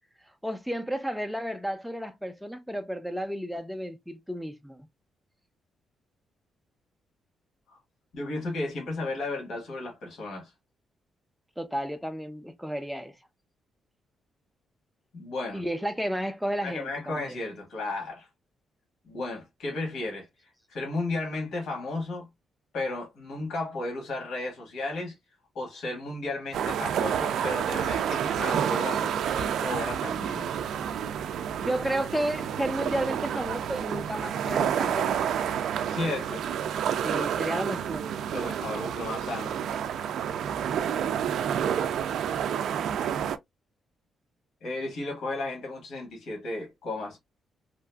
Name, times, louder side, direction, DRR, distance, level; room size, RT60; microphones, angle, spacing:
voice 1, 0.4-4.8 11.6-13.1 15.5-17.4 31.6-35.6 37.0-38.1, equal, ahead, 0.4 m, -32 dB
voice 2, 8.1-10.5 15.1-15.6 16.6-18.3 19.1-20.3 20.7-22.3 22.7-25.1 25.5-30.5 35.8-36.5 38.3-39.5 44.6-47.2, left 2 dB, 65° left, 1.3 m, -34 dB
sound 1, 26.5-43.4, right 8 dB, 70° right, 0.3 m, -29 dB
2.8 x 2.4 x 2.2 m
cardioid pair, 155°, 0 cm